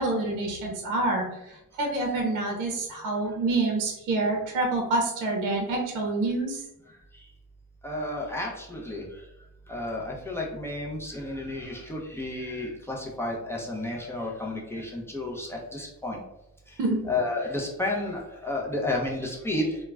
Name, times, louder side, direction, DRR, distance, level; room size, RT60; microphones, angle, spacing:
voice 1, 0.0-6.6 16.8-17.0, right 2 dB, 70° right, 1 dB, 0.6 m, -27 dB
voice 2, 7.8-9.0 9.7-16.2 17.1-19.8, left 2 dB, 10° left, -2 dB, 0.4 m, -31 dB
2.3 x 2.1 x 3.2 m, 0.89 s
cardioid pair, 110°, 32 cm